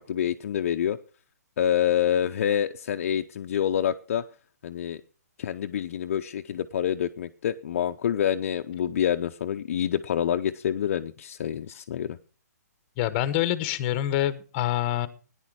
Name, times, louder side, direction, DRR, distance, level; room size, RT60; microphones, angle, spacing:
voice 1, 0.1-1.0 1.6-4.2 4.6-5.0 5.4-12.2, left 9 dB, 50° left, 0.6 m, -27 dB
voice 2, 13.0-15.1, left 13 dB, 25° left, 1.0 m, -26 dB
14.5 x 10.0 x 4.8 m
hypercardioid pair, 150°, 9 cm